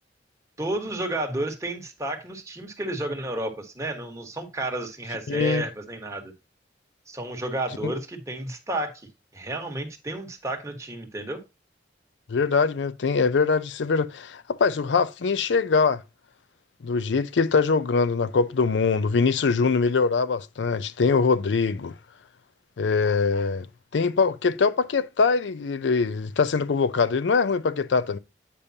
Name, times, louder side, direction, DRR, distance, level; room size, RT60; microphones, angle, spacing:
voice 1, 0.6-6.3 7.1-11.4, right 1 dB, 15° right, 1.2 m, -31 dB
voice 2, 5.3-5.6 7.8-7.9 12.3-16.0 16.8-21.9 22.8-23.7 23.9-28.2, left 4 dB, 85° left, 0.5 m, -23 dB
8.4 x 5.2 x 2.7 m
head